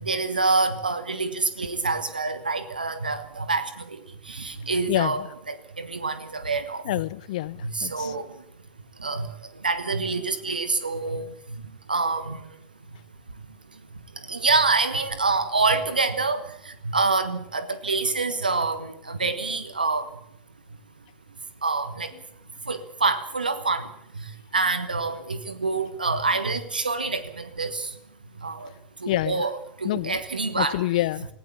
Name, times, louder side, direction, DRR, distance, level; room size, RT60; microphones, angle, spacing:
voice 1, 0.0-3.8 4.3-6.8 7.6-8.3 9.0-9.3 9.6-11.2 11.9-12.4 14.3-20.1 21.6-22.1 22.7-23.9 24.5-27.9 28.4-28.7 29.0-30.8, right 3 dB, 85° right, 12 dB, 1.3 m, -26 dB
voice 2, 4.7-5.3 6.8-8.2 22.1-22.2 29.1-29.5 29.8-30.2 30.5-31.3, left 16 dB, 60° left, 20 dB, 0.7 m, -27 dB
18.5 x 16.5 x 8.5 m, 0.72 s
figure-of-eight pair, 85°, 5 cm